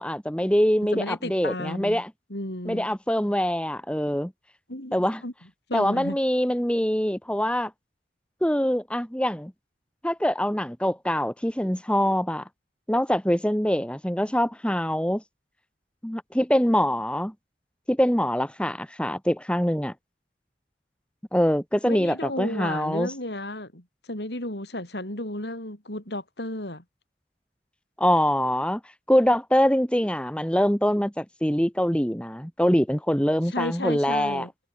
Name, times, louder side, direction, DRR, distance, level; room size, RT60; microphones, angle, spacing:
voice 1, 0.0-2.1 2.7-4.3 4.9-5.2 5.7-7.7 8.4-9.5 10.0-12.4 12.9-15.2 16.0-17.3 17.9-19.9 21.3-23.1 28.0-28.8 29.1-34.5, equal, 5° left, 2.1 m, -24 dB
voice 2, 0.9-2.0 2.3-2.9 4.7-5.0 5.2-5.3 5.7-6.2 21.8-26.8 33.5-34.5, left 1 dB, 75° left, 6.2 m, -33 dB
head